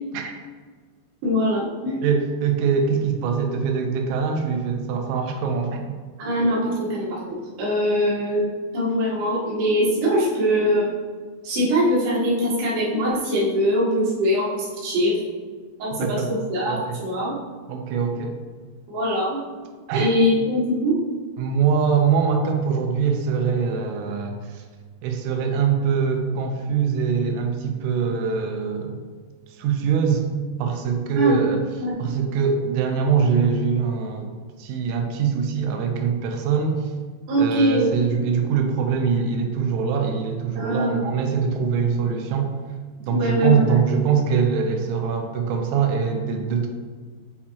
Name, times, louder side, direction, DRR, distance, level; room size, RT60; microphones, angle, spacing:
voice 1, 1.2-2.0 6.2-10.9 11.4-15.2 15.8-17.4 18.9-19.4 19.9-21.0 31.1-31.4 31.8-32.0 37.3-37.9 40.6-41.1 43.1-43.8, equal, 65° right, -7 dB, 3.3 m, -22 dB
voice 2, 2.0-5.8 16.0-16.3 16.7-17.0 17.7-18.4 19.9-20.1 21.4-24.6 25.0-29.0 29.5-30.3 30.6-31.6 32.0-34.3 34.6-36.9 37.4-42.5 43.1-46.7, right 6 dB, 90° right, 3 dB, 3.2 m, -23 dB
8.3 x 4.3 x 2.8 m, 1.5 s
omnidirectional pair, 5.6 m